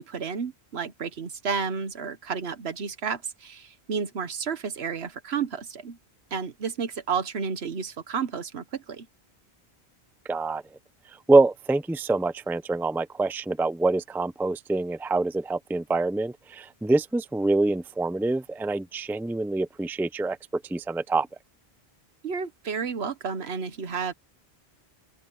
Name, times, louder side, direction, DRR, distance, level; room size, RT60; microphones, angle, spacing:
voice 1, 0.0-6.0 6.3-9.1 22.2-24.1, right 6 dB, 70° right, 1.3 m, -31 dB
voice 2, 10.3-10.6 11.3-20.4 20.7-21.3, right 2 dB, 5° right, 0.4 m, -25 dB
open air
omnidirectional pair, 1.1 m